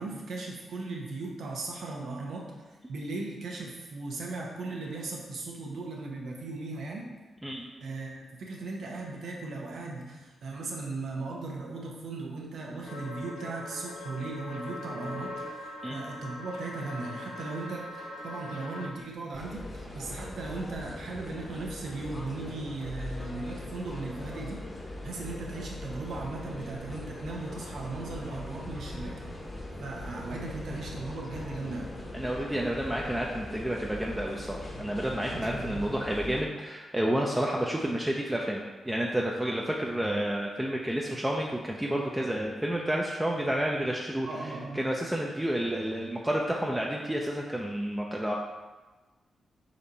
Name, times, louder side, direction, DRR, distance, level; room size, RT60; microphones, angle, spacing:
voice 1, 0.0-2.5 2.9-7.1 7.8-19.7 19.9-24.6 25.0-29.2 29.4-29.5 29.8-32.0 35.3-36.0 44.3-44.8, right 3 dB, 75° right, -1 dB, 0.8 m, -37 dB
voice 2, 7.4-7.7 15.8-16.0 32.1-44.3 44.7-48.3, right 1 dB, 10° right, -1 dB, 0.5 m, -30 dB
sound 1, 12.8-18.9, left 1 dB, 85° left, 0.6 m, -41 dB
sound 2, 19.3-36.4, left 1 dB, 30° left, 0.8 m, -40 dB
4.2 x 2.6 x 4.1 m, 1.2 s
supercardioid pair, 50°, 0 cm